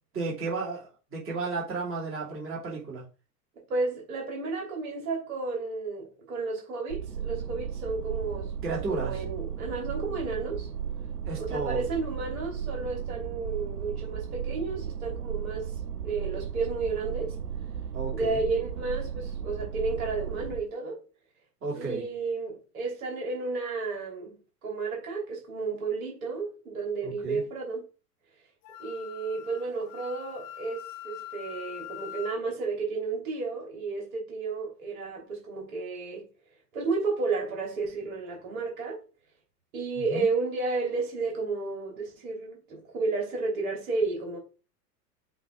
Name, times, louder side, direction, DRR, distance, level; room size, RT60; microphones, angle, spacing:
voice 1, 0.1-3.0 8.6-9.2 11.2-11.8 17.9-18.4 21.6-22.1 27.0-27.4 40.1-40.3, right 3 dB, 25° right, 2.9 m, -33 dB
voice 2, 3.7-8.5 8.9-10.7 11.3-15.8 16.0-17.4 18.1-21.0 21.7-24.4 24.6-27.9 28.8-36.3 36.7-39.0 39.7-44.4, right 3 dB, 60° right, 3.1 m, -32 dB
sound 1, 6.9-20.6, right 8 dB, 85° right, 0.7 m, -35 dB
Wind instrument woodwind instrument, 28.6-32.4, left 12 dB, 30° left, 0.7 m, -42 dB
7.8 x 3.3 x 3.7 m
figure-of-eight pair, 90°, 48 cm